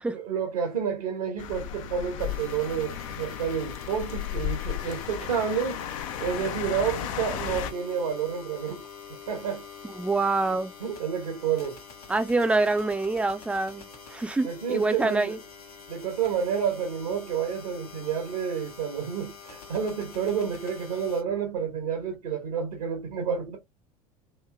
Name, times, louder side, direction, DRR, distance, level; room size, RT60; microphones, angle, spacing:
voice 1, 0.1-5.9 6.2-8.8 9.3-9.7 10.8-11.8 14.4-15.3 15.9-23.6, right 7 dB, 70° right, 1.0 m, -29 dB
sound 1, 1.4-7.7, left 10 dB, 60° left, 0.5 m, -34 dB
sound 2, 2.2-21.2, left 5 dB, 80° left, 1.1 m, -46 dB
voice 2, 9.8-10.7 12.1-15.4, right 3 dB, 5° right, 0.4 m, -26 dB
3.1 x 2.8 x 2.3 m
figure-of-eight pair, 70°, 19 cm